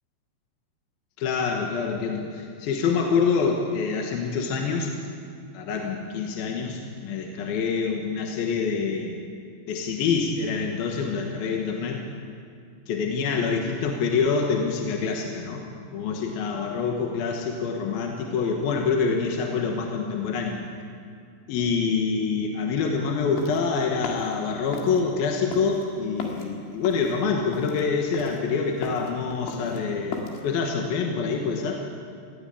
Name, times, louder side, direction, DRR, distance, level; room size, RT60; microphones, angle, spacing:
voice 1, 1.2-4.9 5.5-9.3 9.7-12.0 12.9-15.6 15.9-20.6 21.5-31.8, left 5 dB, 65° left, 1 dB, 2.7 m, -26 dB
sound 1, 23.1-30.5, left 4 dB, 80° left, 4.3 m, -37 dB
19.5 x 15.5 x 8.5 m, 2.3 s
omnidirectional pair, 5.3 m